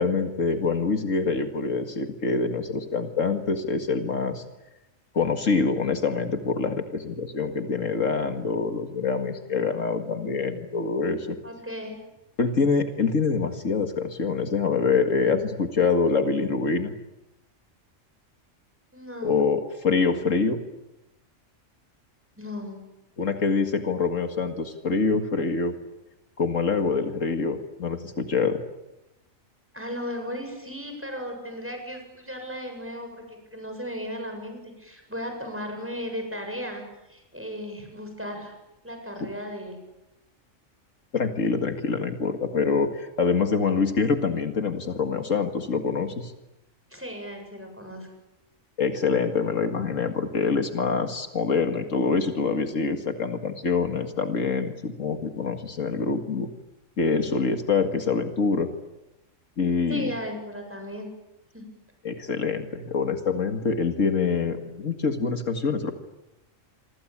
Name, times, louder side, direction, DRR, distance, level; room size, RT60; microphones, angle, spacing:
voice 1, 0.0-4.4 5.1-11.4 12.4-16.9 19.2-20.6 23.2-25.7 26.4-28.6 39.2-39.3 41.1-46.3 48.8-56.5 57.0-58.7 59.6-60.1 62.0-65.9, left 4 dB, 75° left, 6 dB, 2.3 m, -25 dB
voice 2, 11.4-12.0 18.9-19.4 22.4-22.8 29.7-36.8 37.1-38.5 38.8-39.8 46.9-48.1 59.9-61.1 61.5-61.7, equal, 10° right, 4 dB, 7.8 m, -36 dB
28.0 x 24.0 x 8.7 m, 0.95 s
omnidirectional pair, 1.4 m